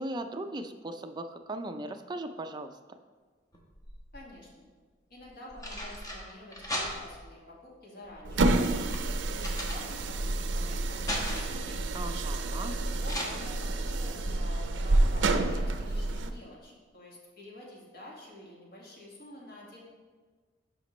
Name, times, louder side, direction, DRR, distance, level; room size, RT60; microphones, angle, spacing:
voice 1, 0.0-2.7 11.9-12.8, right 1 dB, 25° right, 7 dB, 0.4 m, -38 dB
sound 1, 3.5-4.3 5.2-7.3 8.0-10.3 10.7-11.7 13.1-13.3, equal, 20° left, 1.1 m, -38 dB
voice 2, 4.1-4.7 5.1-8.5 8.9-9.4 9.7-11.8 12.6-19.8, left 1 dB, 55° left, -3 dB, 1.8 m, -49 dB
sound 2, 8.2-16.3, right 2 dB, 75° right, 0.5 m, -29 dB
11.0 x 5.1 x 3.1 m, 1.4 s
head